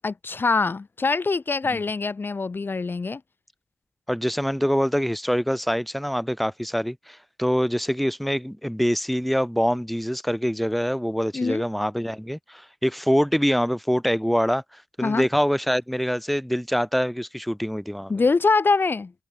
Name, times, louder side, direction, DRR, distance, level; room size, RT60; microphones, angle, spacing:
voice 1, 0.0-3.2 11.3-11.6 15.0-15.2 18.1-19.1, left 4 dB, 30° left, 2.9 m, -23 dB
voice 2, 4.1-18.1, equal, ahead, 3.0 m, -25 dB
cardioid pair, 110°, 7 cm